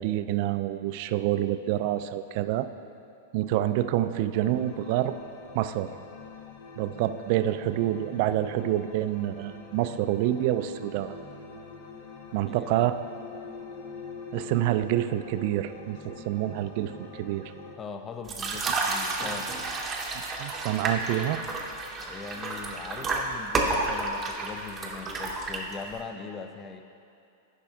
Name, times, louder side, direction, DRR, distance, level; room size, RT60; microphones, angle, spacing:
voice 1, 0.0-2.7 3.3-5.2 5.5-5.9 6.8-11.2 12.3-13.0 14.3-17.5 18.7-18.8 20.4-21.4, right 13 dB, 50° right, 11 dB, 0.3 m, -27 dB
sound 1, 4.3-17.8, left 4 dB, 60° left, 0.8 m, -44 dB
voice 2, 12.5-12.9 17.8-19.5 22.0-26.9, left 5 dB, 20° left, 8 dB, 0.4 m, -41 dB
sound 2, 18.2-26.0, right 3 dB, 20° right, 0.8 m, -31 dB
10.0 x 5.1 x 3.6 m, 2.6 s
hypercardioid pair, 140°, 0 cm